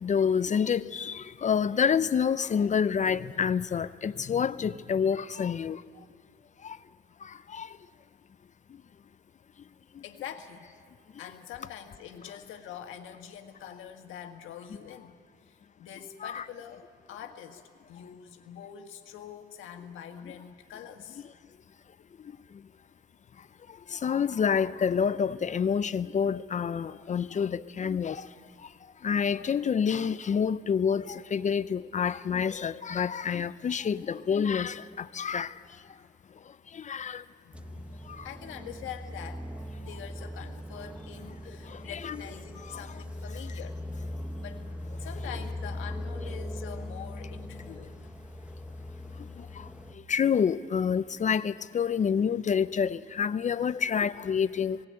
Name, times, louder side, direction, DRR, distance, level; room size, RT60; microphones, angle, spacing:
voice 1, 0.0-5.8 6.6-6.8 7.5-7.7 16.2-16.4 23.9-28.3 29.0-35.5 36.7-37.2 38.2-38.3 41.7-42.2 42.7-42.8 50.1-54.9, left 7 dB, 40° left, 0.5 m, -28 dB
voice 2, 10.0-10.7 11.2-15.2 15.5-17.6 17.9-21.2 37.4-37.9 38.2-39.5 39.8-43.8 44.4-44.6 45.0-48.0, left 9 dB, 85° left, 1.6 m, -44 dB
sound 1, 37.5-49.9, left 1 dB, 5° right, 0.9 m, -40 dB
19.0 x 17.5 x 8.7 m
cardioid pair, 90°, 20 cm